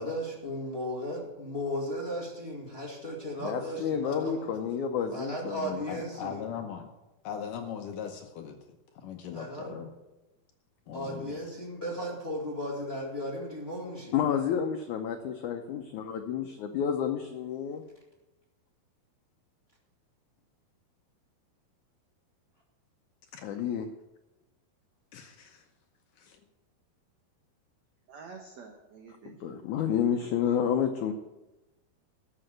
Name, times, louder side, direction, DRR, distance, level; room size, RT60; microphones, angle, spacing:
voice 1, 0.0-4.5 5.1-6.4 9.3-9.7 10.9-14.2, equal, 30° left, -2 dB, 1.1 m, -36 dB
voice 2, 3.4-5.8 14.1-17.8 23.4-23.9 29.3-31.1, left 8 dB, 90° left, 5 dB, 1.7 m, -30 dB
voice 3, 5.9-6.9 7.2-8.6 9.0-9.9 10.9-11.4 23.3-23.4 25.1-25.7 26.2-26.4, left 8 dB, 70° left, 4 dB, 2.2 m, -39 dB
voice 4, 28.1-29.3 29.6-30.3, right 5 dB, 65° right, 2 dB, 1.8 m, -48 dB
12.5 x 6.7 x 7.9 m, 1.0 s
omnidirectional pair, 4.5 m